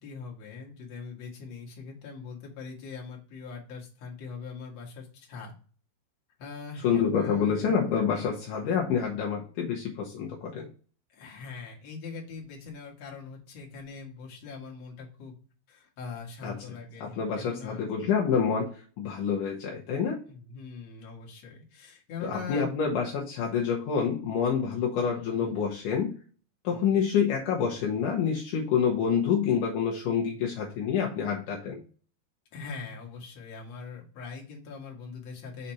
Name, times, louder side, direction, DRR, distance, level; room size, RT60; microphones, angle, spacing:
voice 1, 0.0-5.5 6.4-7.7 11.1-15.3 15.7-17.9 20.3-22.8 25.1-25.6 26.7-27.0 32.5-35.7, left 5 dB, 50° left, -2 dB, 2.3 m, -42 dB
voice 2, 6.8-10.7 16.4-16.7 17.0-18.7 19.0-20.2 22.2-26.2 26.6-31.8, left 7 dB, 75° left, -1 dB, 1.9 m, -27 dB
6.5 x 4.1 x 4.3 m, 0.41 s
omnidirectional pair, 4.9 m